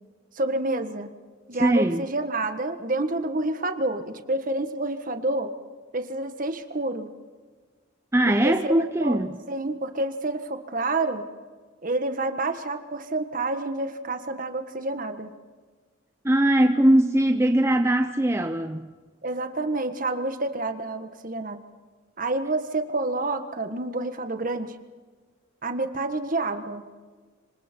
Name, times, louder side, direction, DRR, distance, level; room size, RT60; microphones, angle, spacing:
voice 1, 0.3-1.1 1.5-5.5 5.9-7.1 8.3-9.2 9.5-11.2 11.8-15.4 19.2-21.6 22.2-24.7 25.6-26.9, right 2 dB, 45° right, 1.6 m, -28 dB
voice 2, 1.6-2.0 8.1-9.3 16.2-18.9, right 1 dB, 15° right, 0.7 m, -21 dB
26.5 x 25.5 x 4.6 m
head